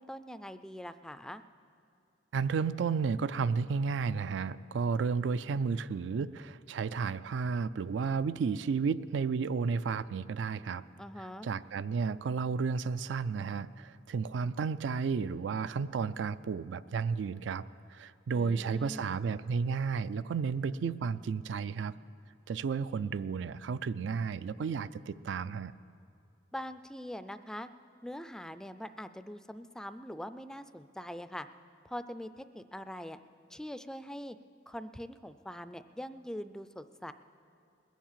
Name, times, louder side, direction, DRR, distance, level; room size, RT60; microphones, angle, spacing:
voice 1, 0.0-1.4 11.0-11.5 18.3-19.1 26.5-27.7 28.0-31.5 31.8-33.2 33.5-34.4 34.7-37.1, equal, 5° left, 12 dB, 0.3 m, -43 dB
voice 2, 2.3-10.8 11.4-17.6 17.9-21.9 22.5-25.7, right 5 dB, 85° right, 16 dB, 0.4 m, -32 dB
20.5 x 7.3 x 7.4 m, 2.4 s
head